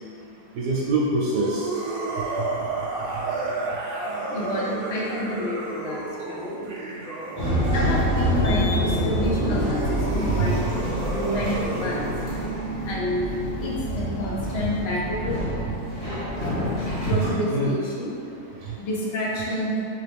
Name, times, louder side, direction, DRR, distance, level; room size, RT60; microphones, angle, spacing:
voice 1, 0.5-1.7 2.4-2.5 10.4-10.5 11.4-11.5 14.6-14.7 17.5-17.8 18.6-18.7, right 2 dB, 90° right, -6 dB, 1.2 m, -25 dB
sound 1, 1.3-7.7 9.1-13.5, right 2 dB, 60° right, 0.5 m, -32 dB
voice 2, 4.3-6.6 7.0-7.1 7.6-15.5 16.1-16.6 17.1-19.8, left 1 dB, 65° left, -4 dB, 0.6 m, -29 dB
sound 2, 7.4-17.3, equal, 25° left, 1.0 m, -26 dB
3.8 x 2.9 x 3.4 m, 2.6 s
omnidirectional pair, 1.7 m